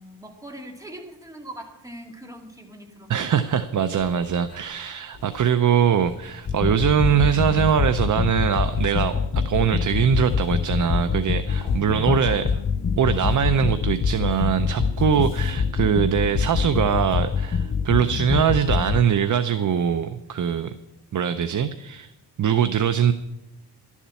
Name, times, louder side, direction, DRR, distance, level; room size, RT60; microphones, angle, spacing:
voice 1, 0.0-3.1 3.5-3.6 11.9-12.6, right 1 dB, 10° right, 1 dB, 2.0 m, -41 dB
voice 2, 3.1-12.4 13.0-20.7 21.1-22.1 22.4-23.1, right 8 dB, 50° right, 10 dB, 0.6 m, -22 dB
sound 1, 3.5-10.8 11.1-19.0, left 4 dB, 80° left, 3.5 m, -45 dB
sound 2, 6.5-19.1, left 6 dB, 30° left, 0.4 m, -24 dB
12.0 x 7.2 x 8.2 m, 0.92 s
wide cardioid pair, 115°, 41 cm